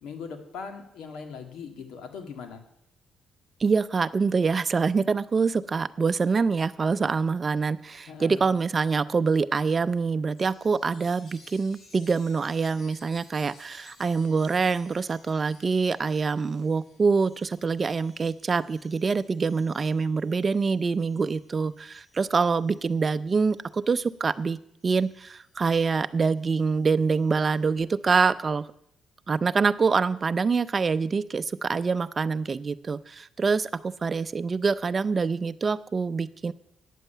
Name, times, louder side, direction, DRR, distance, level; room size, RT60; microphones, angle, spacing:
voice 1, 0.0-2.6 8.1-8.4, left 5 dB, 85° left, 5 dB, 1.9 m, -40 dB
voice 2, 3.6-24.6 24.8-28.7 29.3-36.5, right 4 dB, 35° right, 14 dB, 0.5 m, -25 dB
Chime, 10.4-24.3 24.8-27.6, left 3 dB, 50° left, 3.3 m, -58 dB
9.2 x 7.5 x 9.0 m, 0.74 s
cardioid pair, 90°, 0 cm